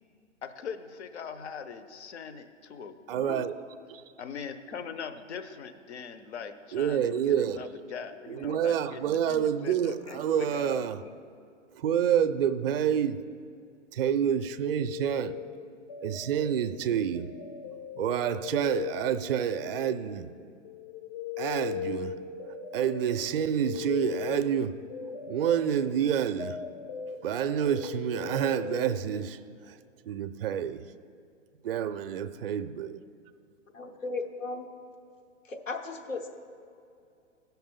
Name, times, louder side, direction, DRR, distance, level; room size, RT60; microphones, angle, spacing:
voice 1, 0.4-3.4 4.2-11.1, left 6 dB, 60° left, 0.8 m, -41 dB
voice 2, 3.1-3.5 3.9-4.0 6.7-7.7 8.3-11.0 11.7-13.2 13.9-15.4 16.0-17.3 18.0-20.3 21.4-22.2 22.7-24.8 25.3-26.6 27.2-29.4 29.7-29.8 30.0-30.8 31.6-33.0, right 9 dB, 50° right, 0.4 m, -28 dB
sound 1, 14.4-20.4 20.6-29.3, left 8 dB, 35° left, 0.4 m, -39 dB
voice 3, 33.7-34.7 35.5-36.3, left 3 dB, 85° left, 1.1 m, -35 dB
16.0 x 5.8 x 3.7 m
figure-of-eight pair, 120°, 38 cm